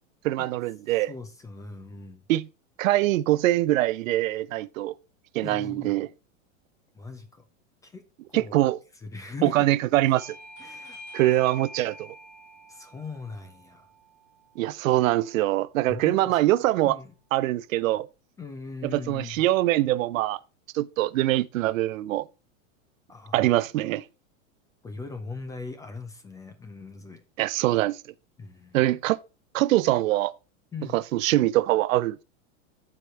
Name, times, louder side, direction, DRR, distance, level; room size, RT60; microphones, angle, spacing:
voice 1, 0.2-1.1 2.3-2.5 2.8-4.9 5.3-6.1 8.3-8.8 9.4-10.4 11.1-12.1 14.6-17.0 17.3-18.1 18.8-20.4 20.7-22.3 23.3-24.0 27.4-28.0 28.7-29.2 29.5-30.3 30.9-32.2, right 16 dB, 80° right, 0.6 m, -23 dB
voice 2, 1.0-2.2 5.4-5.9 6.9-7.4 7.8-8.6 9.0-9.7 10.6-11.0 12.7-13.9 15.9-16.4 16.8-17.1 18.4-19.4 23.1-23.5 24.8-27.2 28.4-28.8 30.7-31.0, left 4 dB, 10° left, 0.4 m, -40 dB
Bell / Doorbell, 10.1-15.2, equal, 45° left, 3.8 m, -46 dB
12.5 x 4.9 x 3.3 m
supercardioid pair, 140°, 40 cm